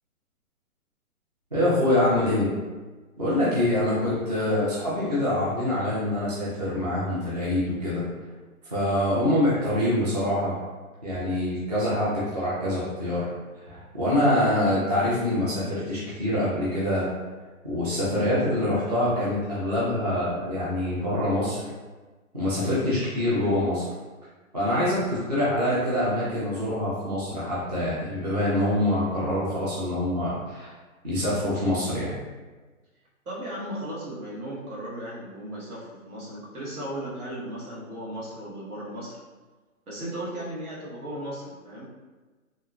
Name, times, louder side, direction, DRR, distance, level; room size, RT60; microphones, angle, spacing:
voice 1, 1.5-2.5 3.2-8.0 8.7-10.5 11.0-13.3 13.7-17.1 17.6-21.6 22.3-23.8 24.5-30.7 31.0-32.2, left 1 dB, 30° right, -9 dB, 0.4 m, -25 dB
voice 2, 33.2-39.2 39.9-41.9, right 1 dB, 85° right, -6 dB, 1.3 m, -36 dB
2.8 x 2.2 x 2.4 m, 1.3 s
hypercardioid pair, 165°, 43 cm